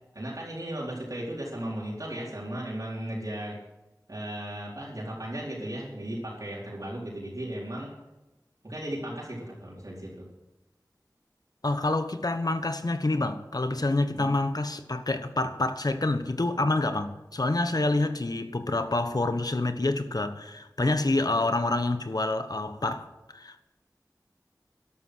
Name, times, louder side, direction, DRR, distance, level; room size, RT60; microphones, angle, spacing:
voice 1, 0.1-3.6 4.1-7.9 8.6-10.3 14.1-14.3, right 1 dB, 55° right, 4.4 m, -36 dB
voice 2, 11.6-23.1 23.3-23.7, left 2 dB, 65° left, 1.3 m, -27 dB
12.5 x 12.0 x 6.3 m
wide cardioid pair, 50°, 7 cm